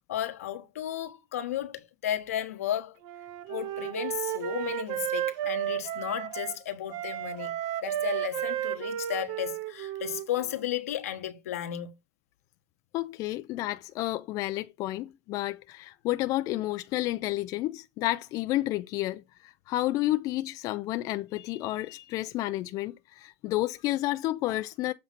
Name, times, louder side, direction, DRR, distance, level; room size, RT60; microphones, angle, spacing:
voice 1, 0.1-3.0 3.5-7.5 7.8-11.9, left 11 dB, 90° left, 1.1 m, -34 dB
Wind instrument woodwind instrument, 3.0-6.6 6.9-10.7, right 11 dB, 60° right, 0.8 m, -33 dB
voice 2, 12.9-24.9, left 16 dB, 50° left, 0.5 m, -31 dB
7.7 x 3.2 x 5.8 m
hypercardioid pair, 105°, 8 cm